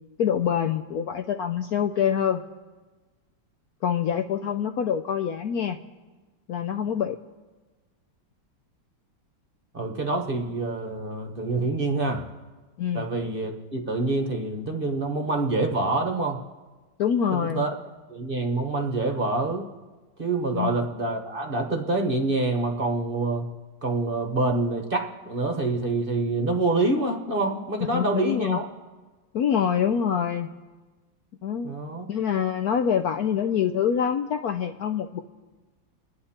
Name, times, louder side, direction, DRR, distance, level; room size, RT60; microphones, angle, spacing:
voice 1, 0.2-2.4 3.8-5.8 6.5-7.2 12.8-13.0 17.0-17.6 20.5-20.8 27.9-28.6 29.3-30.5 31.4-31.7 32.1-35.2, left 8 dB, 70° left, 7 dB, 0.9 m, -25 dB
voice 2, 9.7-12.2 12.9-16.4 17.3-17.7 18.1-19.6 20.2-23.5 23.8-28.6 31.6-32.1, right 2 dB, 30° right, 3 dB, 1.2 m, -26 dB
29.5 x 10.5 x 4.3 m, 1.3 s
omnidirectional pair, 2.1 m